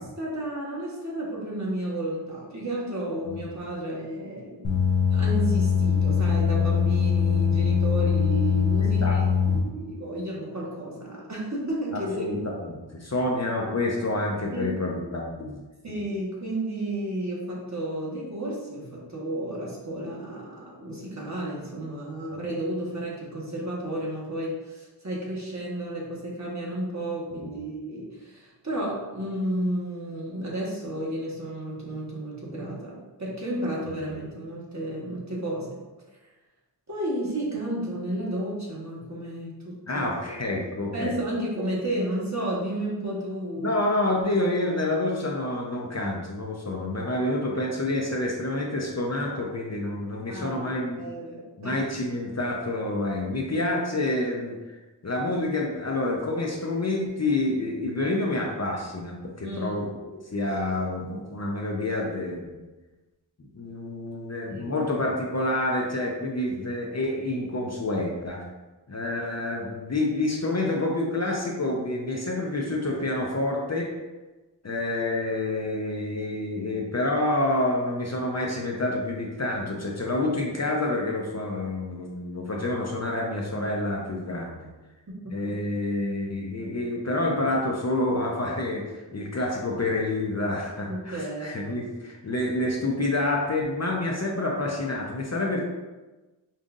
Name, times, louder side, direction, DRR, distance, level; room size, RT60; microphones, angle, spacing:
voice 1, 0.2-4.8 5.1-12.4 14.5-14.7 15.8-35.8 36.9-40.1 40.9-43.8 50.3-51.7 59.4-59.9 64.5-64.8 85.1-85.6 90.9-91.8, right 1 dB, 35° right, -5 dB, 1.3 m, -32 dB
sound 1, 4.6-9.6, left 6 dB, 90° left, 0.8 m, -22 dB
voice 2, 11.9-15.6 27.3-27.6 39.9-41.1 43.6-51.0 51.6-54.8 55.0-60.0 60.3-62.6 63.4-68.5 68.9-73.9 74.6-84.7 85.3-95.6, left 2 dB, 35° left, -1 dB, 0.6 m, -28 dB
5.3 x 2.5 x 2.5 m, 1.2 s
cardioid pair, 40°, 45 cm